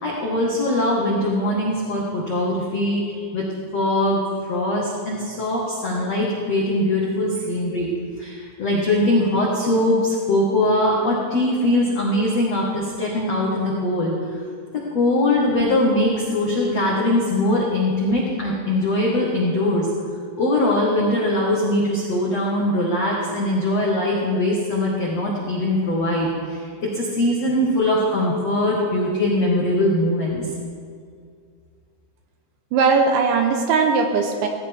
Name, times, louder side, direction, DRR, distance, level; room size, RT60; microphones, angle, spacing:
voice 1, 0.0-3.4 3.7-4.2 4.5-7.9 8.2-14.1 14.9-19.9 20.4-30.5, left 1 dB, 75° left, -4 dB, 1.5 m, -21 dB
voice 2, 32.7-34.5, right 5 dB, 75° right, 4 dB, 2.9 m, -19 dB
18.0 x 16.0 x 3.6 m, 2.2 s
omnidirectional pair, 6.0 m